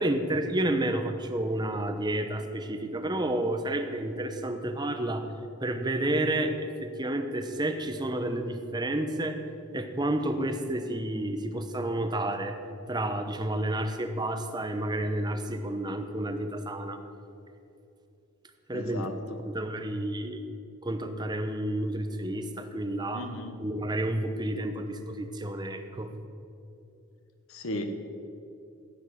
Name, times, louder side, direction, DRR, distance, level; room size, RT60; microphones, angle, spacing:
voice 1, 0.0-5.3 5.6-9.4 9.7-12.6 12.9-17.0 18.7-19.1 19.4-20.4 20.8-23.3 23.6-26.1, right 1 dB, 20° right, 6 dB, 0.9 m, -30 dB
voice 2, 18.7-19.1 23.1-23.5 27.5-28.1, left 1 dB, 80° left, 6 dB, 1.2 m, -35 dB
15.0 x 8.1 x 6.6 m, 2.6 s
head